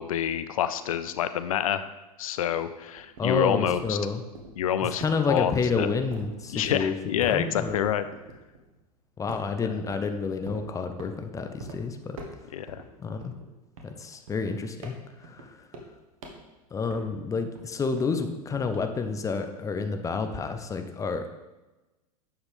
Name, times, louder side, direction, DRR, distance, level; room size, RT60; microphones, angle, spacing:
voice 1, 0.0-1.9 2.2-4.0 4.6-5.9 6.5-8.1 9.6-9.8 12.5-12.8, left 10 dB, 60° left, 12 dB, 0.5 m, -27 dB
sound 1, 2.8-8.9 9.3-10.1 10.5-11.2 11.6-11.8 12.1-12.9 13.2-17.3 17.6-19.1, right 2 dB, 60° right, 1.6 m, -44 dB
voice 2, 3.2-4.2 5.0-7.9 9.2-12.2 13.0-13.3 13.8-14.9 15.2-15.7 16.7-21.2, left 4 dB, 15° left, 7 dB, 0.8 m, -29 dB
10.5 x 7.1 x 3.6 m, 1.1 s
figure-of-eight pair, 90°, 20 cm